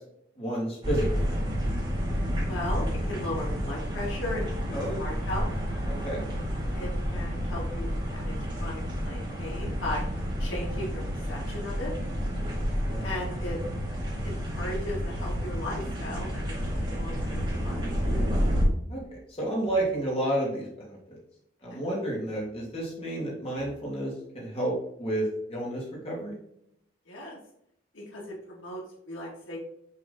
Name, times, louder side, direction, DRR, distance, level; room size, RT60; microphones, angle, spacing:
voice 1, 0.4-1.4 4.7-5.0 5.9-6.3 12.8-13.0 18.9-21.2 21.6-26.4, right 1 dB, 30° left, -4 dB, 2.3 m, -31 dB
sound 1, 0.8-18.6, equal, 25° right, 2.5 m, -30 dB
voice 2, 2.4-5.5 6.7-8.3 8.6-10.0 10.4-11.0 11.3-11.9 13.0-13.6 14.2-18.3 21.7-21.8 27.1-27.4 27.9-29.6, left 1 dB, 85° left, -3 dB, 2.2 m, -37 dB
7.1 x 3.8 x 3.8 m, 0.74 s
head